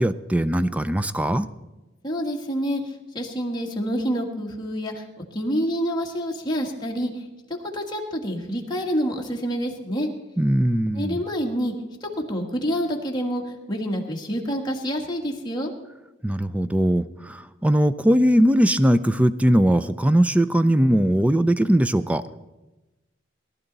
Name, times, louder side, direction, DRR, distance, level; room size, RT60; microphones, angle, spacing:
voice 1, 0.0-1.5 10.4-11.2 16.2-22.2, equal, 5° right, 14 dB, 0.4 m, -20 dB
voice 2, 2.0-5.0 5.3-7.2 7.7-10.1 10.9-11.7 12.0-15.7, equal, 20° left, 0 dB, 1.7 m, -27 dB
18.5 x 11.5 x 4.0 m, 1.1 s
head